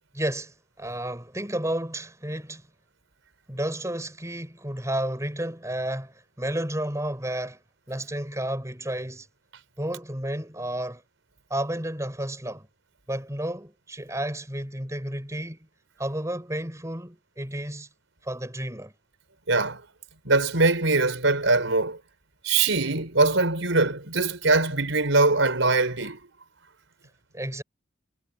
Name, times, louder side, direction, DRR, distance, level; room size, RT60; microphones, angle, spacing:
voice 1, 0.1-2.6 3.5-7.6 7.9-9.3 9.8-11.0 11.5-12.7 13.1-15.7 16.0-17.9 18.2-18.9 27.3-27.6, right 1 dB, 15° right, 5.0 m, -31 dB
voice 2, 19.5-19.8 20.2-22.0 22.4-26.2, right 3 dB, 90° right, 4.5 m, -22 dB
head